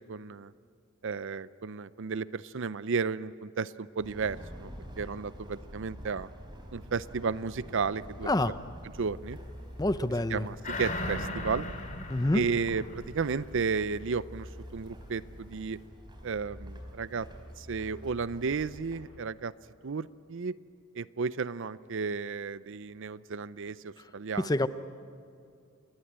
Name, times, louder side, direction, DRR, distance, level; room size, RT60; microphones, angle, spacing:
voice 1, 0.1-0.5 1.0-4.7 5.0-6.3 6.7-8.3 9.0-9.4 10.3-11.7 12.3-14.5 14.7-15.8 16.2-17.3 17.6-19.5 19.8-20.6 21.0-24.5, right 5 dB, 60° right, 16 dB, 0.5 m, -33 dB
sound 1, 4.0-19.0, equal, 20° right, 4.4 m, -47 dB
voice 2, 9.8-10.5 12.1-12.4 24.4-24.7, left 1 dB, 20° left, 12 dB, 0.7 m, -26 dB
sound 2, 10.6-13.5 13.9-14.0, left 2 dB, 40° left, 3.6 m, -37 dB
29.0 x 20.5 x 8.7 m, 2.5 s
head